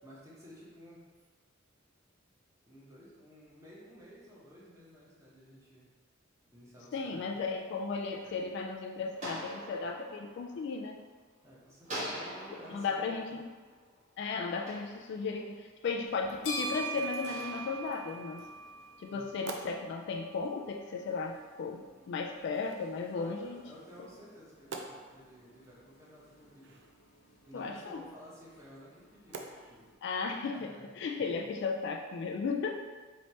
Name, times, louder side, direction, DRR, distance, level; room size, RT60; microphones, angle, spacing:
voice 1, 0.0-1.1 2.6-5.9 6.5-7.4 11.4-13.4 19.0-19.4 23.1-26.8 27.5-29.9 30.5-30.9 31.2-31.5, equal, 15° right, -8 dB, 1.0 m, -53 dB
voice 2, 6.9-11.0 12.7-13.5 14.2-18.5 19.0-23.6 27.5-28.0 30.0-30.7 31.0-32.8, left 4 dB, 55° left, 1 dB, 0.3 m, -35 dB
sound 1, 7.9-11.4 11.8-15.6 16.2-18.9, equal, 35° right, 1.2 m, -46 dB
sound 2, 16.1-29.9, right 2 dB, 90° left, 0.7 m, -46 dB
sound 3, 17.1-32.1, right 4 dB, 60° right, 0.4 m, -52 dB
3.1 x 2.8 x 4.2 m, 1.4 s
head